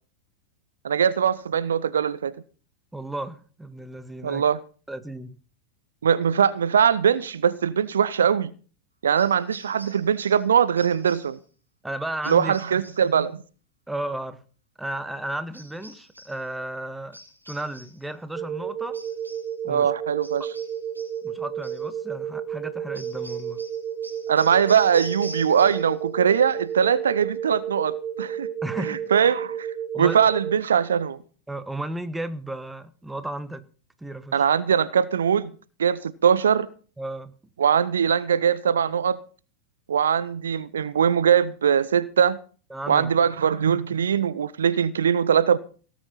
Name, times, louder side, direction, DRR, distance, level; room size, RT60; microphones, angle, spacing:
voice 1, 0.8-2.3 4.2-4.6 6.0-8.5 9.0-11.4 12.3-13.4 19.7-20.5 24.3-28.5 28.9-29.7 30.0-31.2 34.3-35.5 35.8-36.7 37.6-39.2 39.9-42.4 42.9-45.6, right 7 dB, 65° right, 0.8 m, -21 dB
voice 2, 2.9-4.5 4.9-5.4 11.8-12.5 13.9-14.4 14.8-17.2 17.5-19.0 19.6-19.9 21.2-23.6 28.6-29.1 29.9-30.3 31.5-33.6 34.0-34.5 37.0-37.3 42.7-43.1, right 1 dB, 5° right, 1.3 m, -34 dB
sound 1, 9.2-10.5 10.8-11.4 12.2-13.1 15.5-16.4 17.1-18.1 18.9-19.6 20.2-21.2 21.6-21.9 22.9-26.0 26.3-26.8, equal, 85° right, 2.4 m, -45 dB
sound 2, 18.3-30.6, right 9 dB, 20° right, 1.2 m, -32 dB
17.5 x 9.0 x 5.6 m
figure-of-eight pair, 90°, 0 cm